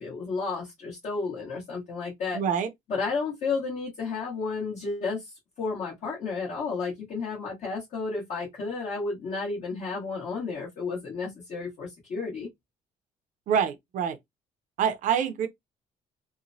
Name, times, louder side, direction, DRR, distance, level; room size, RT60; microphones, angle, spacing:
voice 1, 0.0-2.4 2.9-12.5, left 4 dB, 50° left, 1.2 m, -32 dB
voice 2, 2.3-2.7 13.5-14.2 14.8-15.5, right 8 dB, 55° right, 0.5 m, -26 dB
3.0 x 2.1 x 2.6 m
cardioid pair, 135°, 16 cm